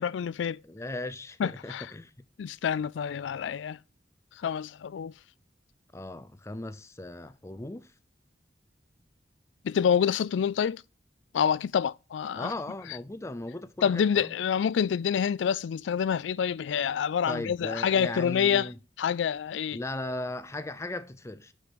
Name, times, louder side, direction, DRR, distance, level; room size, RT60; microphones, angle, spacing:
voice 1, 0.0-0.6 1.4-1.9 2.4-3.8 4.4-5.1 9.6-10.8 11.3-12.5 13.8-18.7 19.0-19.8, left 7 dB, 85° left, 0.3 m, -27 dB
voice 2, 0.6-2.1 5.9-7.9 12.4-14.3 17.3-18.8 19.7-21.5, left 2 dB, 15° left, 0.5 m, -37 dB
6.5 x 5.0 x 6.0 m
head